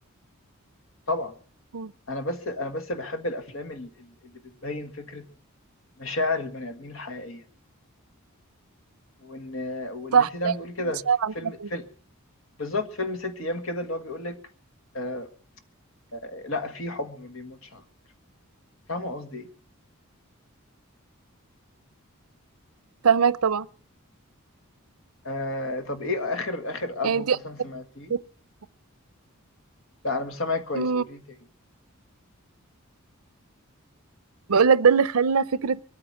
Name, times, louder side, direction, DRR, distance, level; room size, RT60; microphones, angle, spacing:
voice 1, 2.1-5.3 6.0-7.4 9.2-11.0 11.3-11.9 12.6-14.4 14.9-15.3 16.1-17.8 18.9-19.5 25.2-28.1 30.0-31.4, left 2 dB, 65° left, 1.7 m, -32 dB
voice 2, 10.1-10.5 11.1-11.3 11.6-11.7 23.0-23.7 27.0-27.4 28.1-28.2 30.7-31.0 34.5-35.8, right 6 dB, 90° right, 0.6 m, -21 dB
23.0 x 8.8 x 6.1 m
head